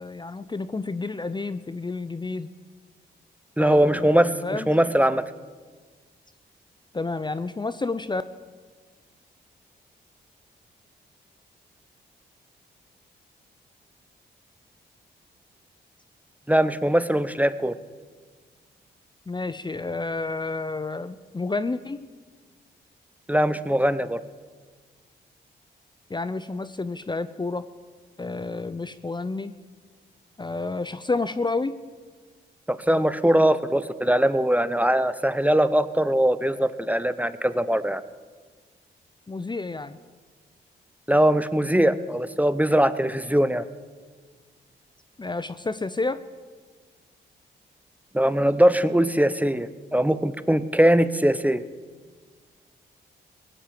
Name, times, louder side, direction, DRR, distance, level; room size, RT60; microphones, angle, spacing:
voice 1, 0.0-2.5 3.6-4.7 6.9-8.2 19.3-22.1 26.1-27.6 28.2-29.5 30.4-31.8 39.3-40.0 45.2-46.2, left 3 dB, 25° left, 14 dB, 0.6 m, -30 dB
voice 2, 3.6-5.2 16.5-17.7 23.3-24.2 32.7-38.0 41.1-43.6 48.1-51.6, right 1 dB, 10° right, 14 dB, 0.8 m, -21 dB
18.0 x 10.0 x 7.7 m, 1.5 s
cardioid pair, 55°, 19 cm